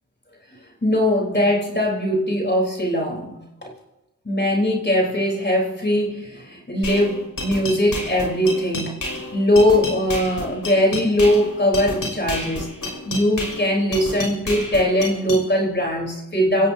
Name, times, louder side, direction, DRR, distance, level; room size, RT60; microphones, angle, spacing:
voice 1, 0.8-3.7 4.3-8.9 9.3-12.7 13.1-16.7, left 1 dB, 30° left, -1 dB, 3.9 m, -20 dB
sound 1, 6.8-15.4, left 1 dB, 65° left, 5.9 m, -30 dB
26.0 x 16.0 x 2.8 m, 0.93 s
cardioid pair, 45°, 34 cm